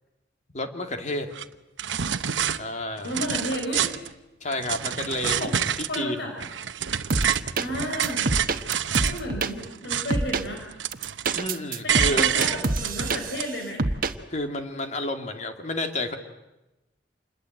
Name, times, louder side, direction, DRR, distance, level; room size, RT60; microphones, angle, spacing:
voice 1, 0.5-1.3 2.6-3.1 4.4-6.3 11.3-12.3 14.3-16.2, left 1 dB, 40° left, 5 dB, 2.5 m, -30 dB
sound 1, 1.3-1.4 1.8-2.6 3.0-4.1 4.5-6.0 6.4-9.2 9.6-10.3 10.6-11.5 11.9-13.4, right 9 dB, 90° right, 0.9 m, -27 dB
voice 2, 3.0-3.9 5.1-5.5 5.9-6.3 7.6-8.4 9.0-10.6 11.8-13.9, equal, 70° left, 2 dB, 4.5 m, -32 dB
sound 2, 7.1-7.7 8.0-9.5 10.1-10.4 10.9-13.5 13.8-14.1, right 3 dB, 50° right, 1.3 m, -26 dB
27.5 x 21.0 x 8.0 m, 0.98 s
head